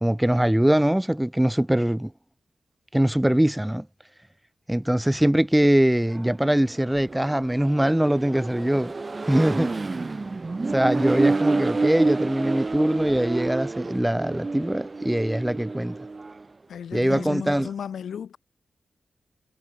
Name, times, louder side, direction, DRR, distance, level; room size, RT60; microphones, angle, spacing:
voice 1, 0.0-2.1 2.9-3.9 4.7-8.9 9.3-9.7 10.7-16.0 16.9-17.7, right 1 dB, 10° right, 0.4 m, -22 dB
Accelerating revving vroom, 6.0-16.4, right 3 dB, 35° right, 3.6 m, -29 dB
voice 2, 16.7-18.4, left 8 dB, 80° left, 7.0 m, -34 dB
cardioid pair, 65°, 0 cm